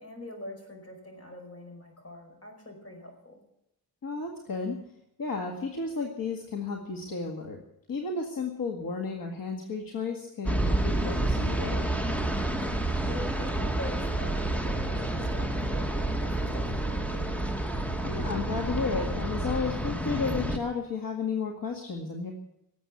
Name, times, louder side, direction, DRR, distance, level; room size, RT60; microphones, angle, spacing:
voice 1, 0.0-3.4 12.2-12.5 13.1-17.5, left 1 dB, 40° left, 3 dB, 5.1 m, -44 dB
voice 2, 4.0-4.8 5.2-7.6 7.9-11.9 18.0-22.3, left 4 dB, 65° left, 2 dB, 2.0 m, -33 dB
sound 1, 10.4-20.6, right 1 dB, 5° left, 1.2 m, -29 dB
18.5 x 7.9 x 8.5 m, 0.82 s
wide cardioid pair, 140°, 36 cm